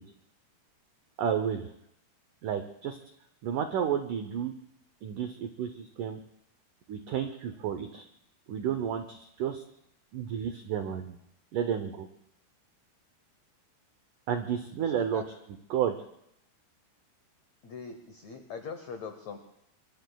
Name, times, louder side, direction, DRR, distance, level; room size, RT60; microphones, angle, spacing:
voice 1, 1.2-1.7 2.4-3.0 3.4-4.5 5.0-6.2 6.9-8.0 8.5-9.6 10.1-11.2 11.5-12.1 14.3-15.2 15.7-15.9, right 8 dB, 85° right, 8 dB, 1.8 m, -31 dB
voice 2, 14.8-15.2 17.6-19.4, left 5 dB, 85° left, 6 dB, 1.5 m, -41 dB
24.0 x 23.5 x 2.3 m, 0.78 s
omnidirectional pair, 4.7 m